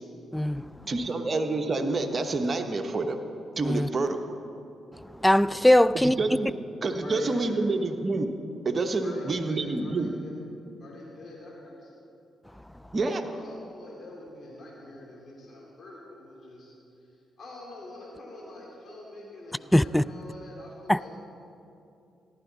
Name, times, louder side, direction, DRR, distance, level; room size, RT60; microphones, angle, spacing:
voice 1, 0.3-0.7 3.6-3.9 5.2-6.2 19.7-20.0 20.9-21.1, left 1 dB, 10° left, 0.3 m, -21 dB
voice 2, 0.9-3.2 3.6-4.2 6.0-6.5 6.8-8.3 8.6-10.1 12.9-13.3, right 3 dB, 40° right, 1.1 m, -28 dB
voice 3, 7.0-7.6 9.0-10.3 10.8-11.9 13.1-16.7 17.0-21.1, left 1 dB, 55° left, 2.5 m, -44 dB
14.5 x 11.0 x 4.0 m
hypercardioid pair, 45°, 0 cm